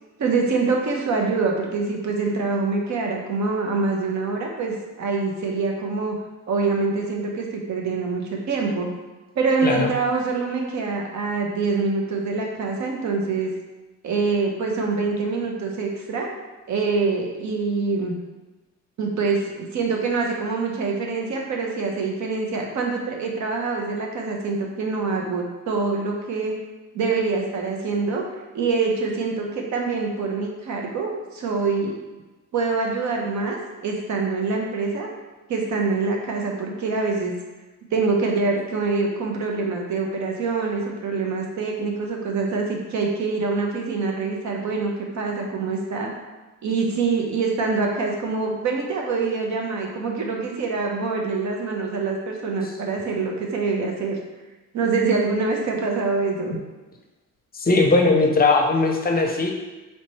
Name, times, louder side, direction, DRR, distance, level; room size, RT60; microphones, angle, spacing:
voice 1, 0.2-6.2 6.5-8.9 9.3-13.5 14.0-16.3 16.7-18.1 19.0-26.6 26.9-28.2 28.5-31.9 32.5-35.1 35.5-37.3 37.9-46.1 46.6-54.2 54.7-56.5, right 4 dB, 70° right, 0 dB, 0.9 m, -25 dB
voice 2, 57.5-59.5, left 3 dB, 30° left, 2 dB, 0.6 m, -19 dB
3.3 x 3.0 x 4.3 m, 1.1 s
cardioid pair, 90°, 30 cm